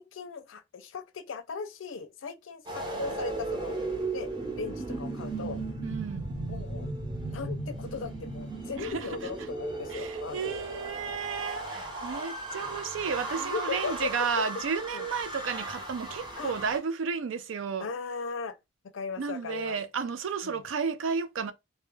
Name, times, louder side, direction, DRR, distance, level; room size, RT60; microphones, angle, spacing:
voice 1, 0.0-3.7 4.1-4.3 4.6-5.6 6.5-6.9 7.3-10.6 11.7-11.9 13.4-14.1 14.4-14.5 14.9-15.1 16.4-16.5 17.8-18.6 18.9-19.8 20.4-20.6, left 5 dB, 80° left, 0.5 m, -38 dB
sound 1, 2.7-16.8, right 2 dB, 25° right, 0.8 m, -36 dB
voice 2, 5.8-6.3 8.8-9.1 9.9-17.9 19.2-21.5, right 5 dB, 70° right, 0.4 m, -32 dB
2.3 x 2.1 x 3.0 m
head